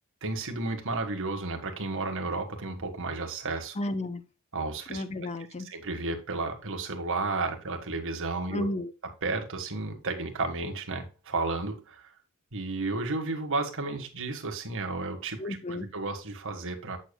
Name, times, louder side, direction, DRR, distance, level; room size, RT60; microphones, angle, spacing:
voice 1, 0.2-3.7 4.5-5.0 5.6-8.7 9.2-12.0 12.5-17.0, right 3 dB, 65° right, 1.5 m, -32 dB
voice 2, 3.8-4.2 4.9-5.7 8.5-8.9 15.4-15.9, left 1 dB, 30° left, 0.8 m, -32 dB
8.1 x 6.8 x 2.2 m
head